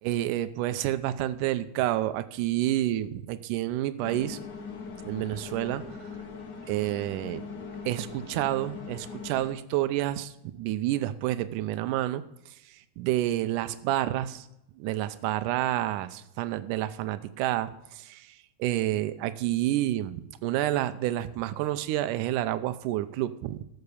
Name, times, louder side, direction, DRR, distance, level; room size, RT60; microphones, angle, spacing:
voice 1, 0.0-4.4 5.1-5.9 6.7-7.5 7.9-12.2 12.7-14.5 14.8-23.6, right 14 dB, 75° right, 12 dB, 2.1 m, -29 dB
sound 1, 4.0-9.5, left 5 dB, 80° left, 0.9 m, -41 dB
13.0 x 6.7 x 6.9 m, 0.86 s
omnidirectional pair, 4.0 m